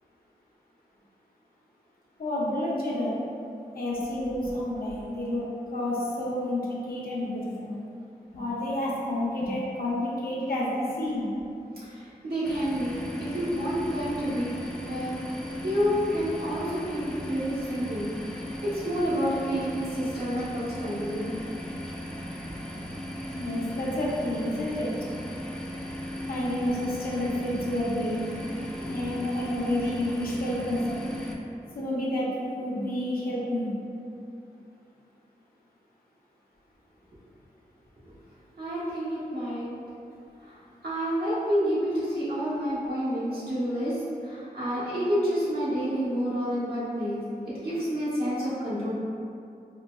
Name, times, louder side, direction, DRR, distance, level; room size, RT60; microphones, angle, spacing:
voice 1, 2.2-3.2 3.7-7.8 8.3-11.3 23.3-24.9 26.3-28.3 28.9-31.1 31.7-33.7, left 1 dB, 70° left, -5 dB, 0.7 m, -29 dB
voice 2, 11.8-14.5 14.8-15.1 15.6-21.3 28.8-29.0 38.6-39.6 40.4-47.2 47.6-48.9, equal, 85° right, -11 dB, 1.1 m, -29 dB
sound 1, 12.4-31.3, equal, 5° left, 0.3 m, -37 dB
4.0 x 2.3 x 2.3 m, 2.6 s
wide cardioid pair, 75°, 16 cm